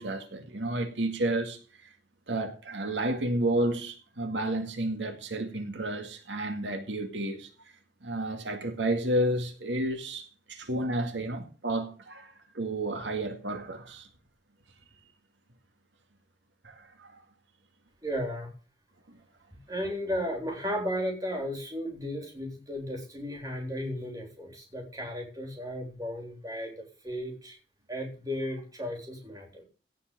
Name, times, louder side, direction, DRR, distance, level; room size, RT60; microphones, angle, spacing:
voice 1, 0.0-1.6 2.3-7.5 8.0-14.1 16.6-17.1, right 1 dB, 85° right, 2.2 m, -31 dB
voice 2, 18.0-18.5 19.7-27.6 27.9-29.6, equal, 20° right, 3.6 m, -34 dB
16.5 x 5.8 x 6.9 m
head